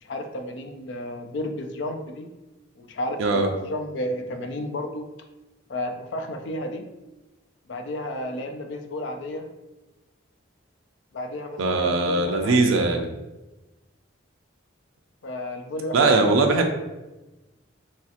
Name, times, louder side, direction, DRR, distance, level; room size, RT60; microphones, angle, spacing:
voice 1, 0.0-2.3 2.8-5.0 5.7-6.9 7.7-9.5 11.1-12.8 15.2-16.4, left 1 dB, 60° left, 5 dB, 0.4 m, -32 dB
voice 2, 11.6-13.1 15.9-16.7, right 3 dB, 80° right, 3 dB, 0.4 m, -20 dB
3.0 x 2.8 x 2.4 m, 1.1 s
head